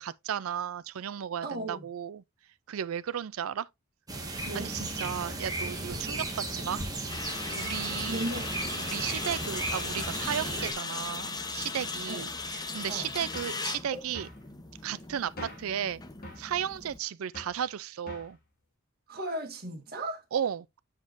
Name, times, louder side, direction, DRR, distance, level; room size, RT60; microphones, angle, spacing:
voice 1, 0.0-2.2 2.7-3.7 4.5-6.3 6.5-6.8 7.5-8.3 8.8-14.3 14.8-16.0 16.4-18.4 20.3-20.8, right 9 dB, 75° right, 0.4 m, -34 dB
voice 2, 1.4-1.9 4.5-4.7 7.7-8.8 12.1-12.2 12.8-13.1 19.1-20.2, right 1 dB, 50° right, 1.9 m, -36 dB
sound 1, 4.1-10.7, right 2 dB, 20° right, 1.5 m, -35 dB
sound 2, 7.1-17.0, left 3 dB, 20° left, 0.7 m, -38 dB
sound 3, 13.3-13.6 14.1-14.4 15.4-15.7 16.2-16.5 17.3-17.6 18.1-18.4, left 1 dB, 45° left, 2.7 m, -44 dB
7.3 x 6.6 x 2.6 m
head